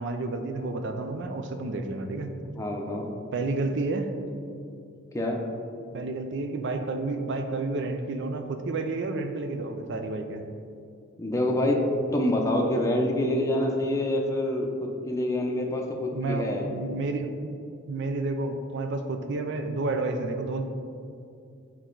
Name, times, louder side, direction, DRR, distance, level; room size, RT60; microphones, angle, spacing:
voice 1, 0.0-2.4 3.3-4.1 5.9-10.4 16.1-17.5 17.9-20.6, right 3 dB, 60° right, 6 dB, 0.5 m, -30 dB
voice 2, 2.5-3.1 5.1-5.4 11.2-11.8 12.1-16.7, left 1 dB, 15° left, 0 dB, 0.6 m, -26 dB
6.3 x 4.5 x 3.9 m, 2.5 s
head